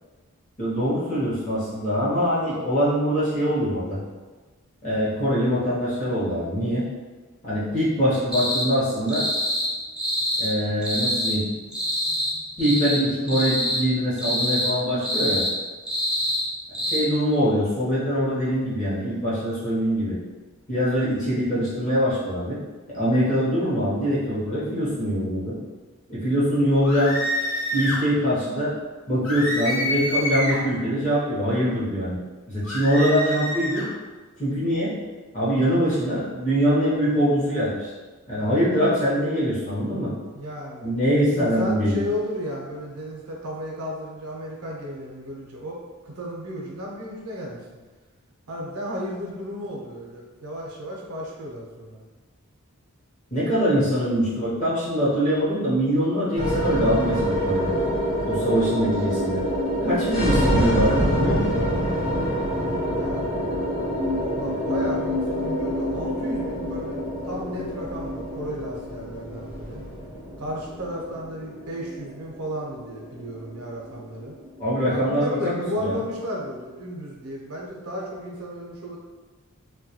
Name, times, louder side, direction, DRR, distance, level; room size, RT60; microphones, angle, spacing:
voice 1, 0.6-4.0 4.8-6.9 7.4-9.2 10.4-11.5 12.6-15.4 16.8-20.2 20.7-22.6 22.9-25.6 26.1-27.2 27.7-28.7 29.1-32.2 32.5-33.9 34.4-34.9 35.3-37.9 38.3-40.1 40.8-42.1 53.3-57.7 58.2-59.4 59.8-61.5 74.6-76.0, equal, 35° left, -8 dB, 0.7 m, -23 dB
sound 1, 8.3-8.7 9.1-9.7 10.0-10.5 10.8-11.4 11.7-12.3 12.6-13.0 13.3-13.8 14.2-14.7 15.0-15.5 15.9-16.4 16.7-17.0, equal, 5° right, 0.3 m, -25 dB
sound 2, 26.8-28.0 29.2-30.7 32.6-33.9, left 1 dB, 65° left, 0.8 m, -27 dB
voice 2, 40.3-45.8 46.0-47.6 48.5-52.0 62.9-63.4 64.1-69.8 70.4-74.3 74.9-79.0, equal, 85° right, -2 dB, 0.6 m, -33 dB
sound 3, 56.3-74.7, equal, 80° left, 1.0 m, -26 dB
2.2 x 2.2 x 2.8 m, 1.3 s
head